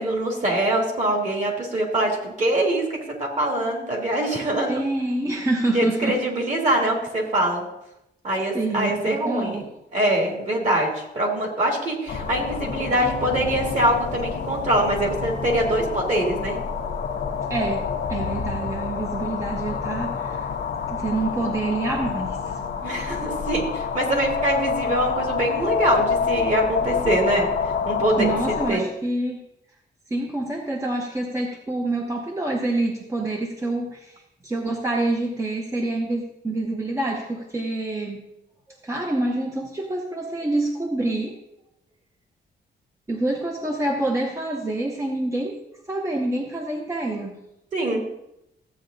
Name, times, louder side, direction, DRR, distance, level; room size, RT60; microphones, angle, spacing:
voice 1, 0.0-4.8 5.7-7.6 8.2-9.6 9.9-16.6 22.8-27.5 27.9-28.9 47.7-48.0, right 1 dB, 45° right, -1 dB, 2.5 m, -23 dB
voice 2, 4.6-6.2 8.5-9.6 17.5-17.8 18.1-20.5 20.9-22.6 28.2-29.4 30.1-38.2 38.8-41.4 43.1-47.4, right 2 dB, 15° right, 0 dB, 0.8 m, -27 dB
sound 1, 12.1-28.7, left 6 dB, 85° left, 1.0 m, -28 dB
14.5 x 8.4 x 2.6 m, 0.85 s
wide cardioid pair, 150°, 18 cm